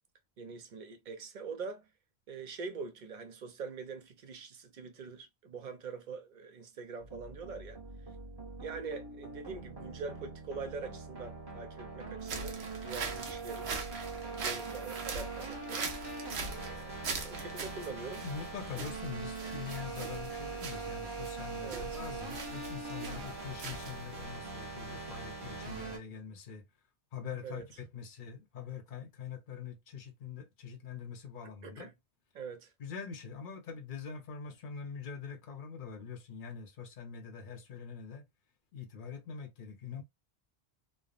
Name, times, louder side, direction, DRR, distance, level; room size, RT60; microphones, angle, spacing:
voice 1, 0.4-1.9 2.3-7.8 8.6-13.7 14.2-15.9 16.4-18.2 21.6-22.0 27.4-27.6 31.6-31.9 32.3-32.7, right 4 dB, 55° right, 0.6 m, -44 dB
sound 1, 7.0-26.0, right 3 dB, 25° right, 0.9 m, -42 dB
sound 2, 12.2-24.2, right 4 dB, 80° right, 1.0 m, -42 dB
voice 2, 16.3-16.6 18.1-26.7 27.1-31.9 32.8-38.3 38.7-40.0, left 6 dB, 55° left, 0.8 m, -44 dB
3.3 x 2.0 x 2.4 m
omnidirectional pair, 1.1 m